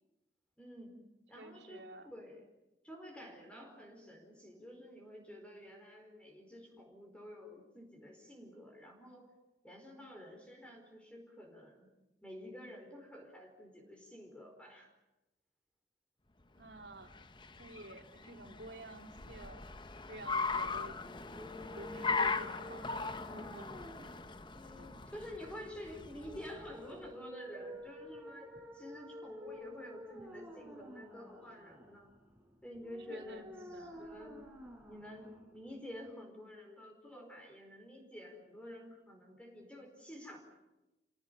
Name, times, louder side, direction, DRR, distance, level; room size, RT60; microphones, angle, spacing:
voice 1, 0.6-1.0 1.3-2.4 2.8-9.3 9.6-11.9 12.2-14.9 24.5-32.1 32.6-34.4 34.9-40.4, left 1 dB, 5° left, 2 dB, 4.6 m, -50 dB
voice 2, 1.4-2.1 16.6-17.1 17.6-19.7 20.1-21.0 21.6-23.7 24.7-24.9 33.1-34.2, right 2 dB, 85° right, 3 dB, 3.5 m, -51 dB
Car, 16.7-27.0, left 4 dB, 25° left, 0.9 m, -39 dB
sound 1, 21.0-36.0, left 1 dB, 10° right, 5.0 m, -51 dB
28.0 x 18.0 x 9.2 m, 1.0 s
head